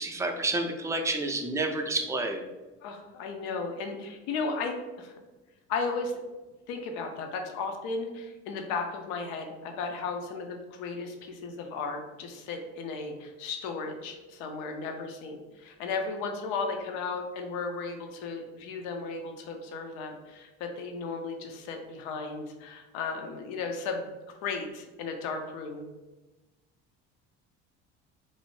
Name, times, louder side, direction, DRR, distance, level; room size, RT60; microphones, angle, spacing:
voice 1, 0.0-2.4, right 2 dB, 10° right, 4 dB, 0.3 m, -29 dB
voice 2, 2.8-5.1 5.7-6.2 6.7-24.1 24.4-25.8, left 4 dB, 80° left, 4 dB, 0.5 m, -35 dB
2.6 x 2.1 x 3.0 m, 1.1 s
supercardioid pair, 85°, 31 cm